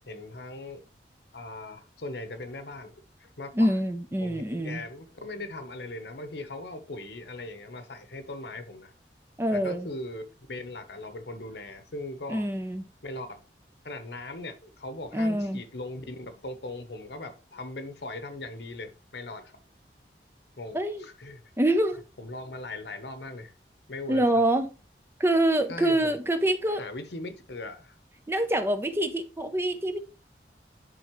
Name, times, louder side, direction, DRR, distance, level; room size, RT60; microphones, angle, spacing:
voice 1, 0.1-0.8 1.3-2.9 3.2-3.7 4.2-8.9 9.5-10.2 10.5-12.4 13.0-13.4 13.8-19.6 20.6-21.4 22.2-23.5 23.9-24.2 25.7-26.2 26.8-28.0, left 2 dB, 70° left, 1.0 m, -39 dB
voice 2, 3.5-4.8 9.4-9.9 12.3-12.9 15.1-15.6 20.7-21.0 21.6-22.0 24.1-24.7 25.2-26.8 28.3-30.0, right 1 dB, 15° right, 0.6 m, -25 dB
10.5 x 3.7 x 3.1 m
head